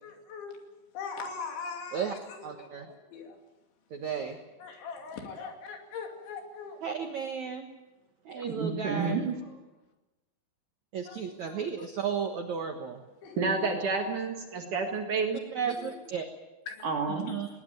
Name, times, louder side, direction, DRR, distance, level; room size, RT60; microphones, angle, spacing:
voice 1, 0.0-0.6 0.9-3.4 4.6-6.8 8.3-8.4 9.5-9.6 11.1-11.6 13.2-13.8 15.7-16.0 16.7-16.8, left 5 dB, 70° left, 3 dB, 5.0 m, -41 dB
voice 2, 2.4-2.9 3.9-4.4 6.8-7.7 8.2-9.2 10.9-13.0 15.5-16.3 17.1-17.5, right 7 dB, 85° right, 5 dB, 1.6 m, -34 dB
voice 3, 8.4-9.4 13.4-15.4 16.8-17.3, right 4 dB, 55° right, 3 dB, 2.5 m, -30 dB
20.0 x 19.5 x 9.1 m, 1.1 s
omnidirectional pair, 5.6 m